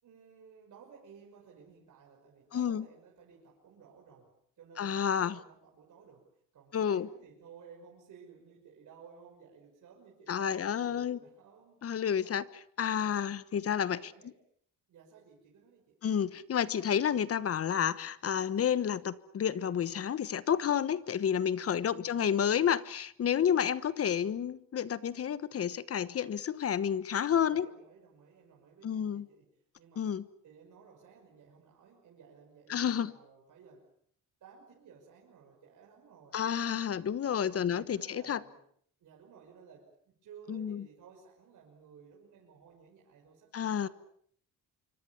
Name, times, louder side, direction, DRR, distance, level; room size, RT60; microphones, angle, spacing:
voice 1, 0.0-11.8 12.2-12.5 12.9-13.2 13.8-14.4 14.9-16.0 21.8-22.3 27.3-30.2 30.4-33.9 34.4-36.8 37.3-38.6 39.0-43.9, right 6 dB, 65° right, -1 dB, 6.2 m, -56 dB
voice 2, 2.5-2.8 4.8-5.4 6.7-7.1 10.3-11.2 11.8-12.4 12.8-14.1 16.0-27.7 28.8-29.3 30.0-30.2 32.7-33.1 36.3-38.4 40.5-40.8 43.5-43.9, left 8 dB, 45° left, 16 dB, 1.2 m, -30 dB
26.5 x 24.5 x 7.2 m, 0.63 s
cardioid pair, 110°, 32 cm